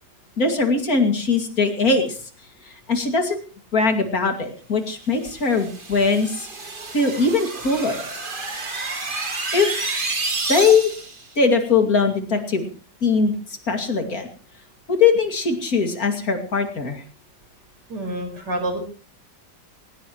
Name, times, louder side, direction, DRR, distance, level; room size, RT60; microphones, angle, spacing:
voice 1, 0.4-2.2 2.7-3.4 3.7-6.5 6.9-8.0 9.5-9.7 10.5-10.9 11.4-12.7 13.0-13.3 13.7-14.3 14.9-17.0, left 4 dB, 55° left, 6 dB, 2.9 m, -20 dB
sound 1, 5.2-11.2, right 3 dB, 30° right, 2.0 m, -29 dB
voice 2, 17.9-18.8, right 1 dB, 75° right, 5 dB, 5.3 m, -27 dB
19.0 x 19.0 x 3.1 m, 0.38 s
omnidirectional pair, 1.8 m